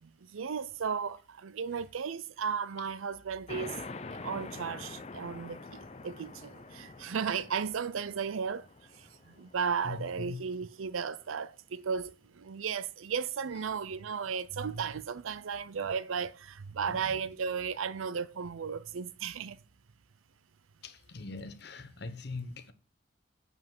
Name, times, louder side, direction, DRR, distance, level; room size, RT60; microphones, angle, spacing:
voice 1, 0.0-3.8 4.1-8.7 9.0-19.6, right 6 dB, 85° right, 0.5 m, -35 dB
sound 1, 3.5-10.6, left 3 dB, 30° left, 0.6 m, -46 dB
voice 2, 9.8-10.4 16.8-17.2 20.8-22.7, left 3 dB, 55° left, 0.9 m, -42 dB
7.9 x 5.4 x 7.4 m
head